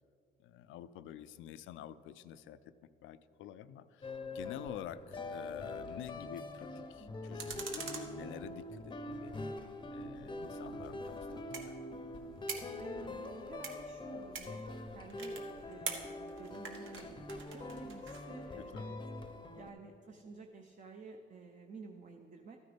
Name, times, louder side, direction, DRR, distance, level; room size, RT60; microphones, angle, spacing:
voice 1, 0.4-2.6 3.0-9.3 9.9-11.7 18.6-18.9, left 11 dB, 80° left, 14 dB, 0.4 m, -49 dB
sound 1, 4.0-19.7, left 2 dB, 25° left, 0.6 m, -44 dB
sound 2, 7.4-9.0 10.4-18.2, right 5 dB, 80° right, 1.1 m, -46 dB
voice 2, 12.8-19.0 19.2-22.6, right 4 dB, 40° right, 4 dB, 0.6 m, -52 dB
13.0 x 9.5 x 3.4 m, 2.7 s
cardioid pair, 90°, 20 cm